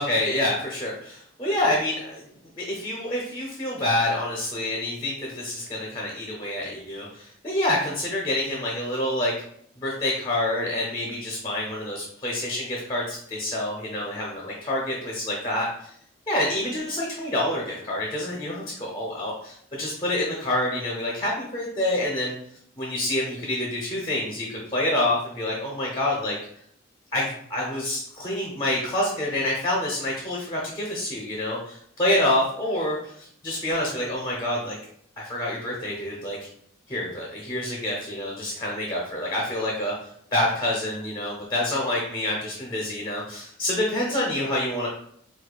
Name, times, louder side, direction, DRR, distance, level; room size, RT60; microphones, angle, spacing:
voice 1, 0.0-2.2 2.6-9.3 9.8-15.9 16.3-22.3 22.8-26.4 27.1-34.8 35.2-36.5 36.9-44.9, left 1 dB, 20° left, -3 dB, 0.6 m, -27 dB
4.4 x 2.3 x 2.3 m, 0.67 s
head